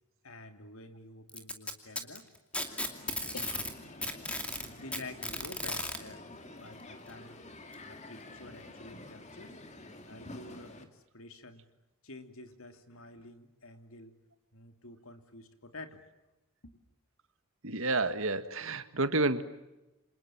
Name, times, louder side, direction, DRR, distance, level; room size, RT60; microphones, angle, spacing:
voice 1, 0.2-2.3 3.1-3.7 4.7-7.4 7.9-9.6 10.1-11.6 12.0-14.1 14.5-16.0 16.6-16.8, left 2 dB, 70° left, 7 dB, 2.9 m, -49 dB
Packing tape duct tape, 1.3-3.7 4.0-6.0 7.1-7.2 7.7-7.8 8.7-8.8, left 1 dB, 5° left, 2.5 m, -35 dB
Crowd, 2.5-10.8, left 2 dB, 30° left, 2.5 m, -49 dB
voice 2, 17.6-19.4, right 2 dB, 65° right, 11 dB, 1.7 m, -30 dB
29.5 x 26.5 x 7.3 m, 1.0 s
head